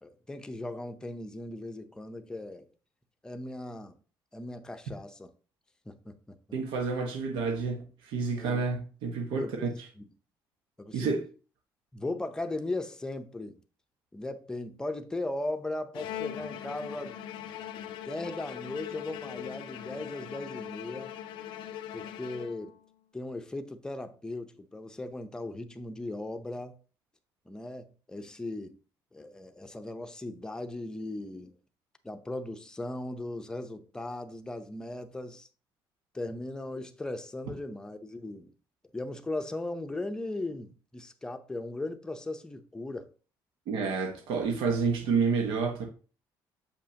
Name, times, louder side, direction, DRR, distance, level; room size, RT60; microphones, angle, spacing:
voice 1, 0.0-2.7 3.2-4.0 4.3-5.3 5.9-6.4 8.4-8.6 9.4-9.5 10.0-10.1 10.8-11.1 11.9-13.6 14.1-17.2 18.0-21.1 21.9-22.7 23.1-26.8 27.5-28.8 29.1-31.6 32.0-35.5 36.1-38.5 38.9-43.1, left 2 dB, 10° left, 0.6 m, -38 dB
voice 2, 6.5-9.9 10.9-11.3 43.7-45.8, right 4 dB, 85° right, 1.2 m, -29 dB
Bowed string instrument, 15.9-22.9, left 10 dB, 90° left, 0.5 m, -41 dB
7.0 x 5.4 x 2.9 m
cardioid pair, 135°, 8 cm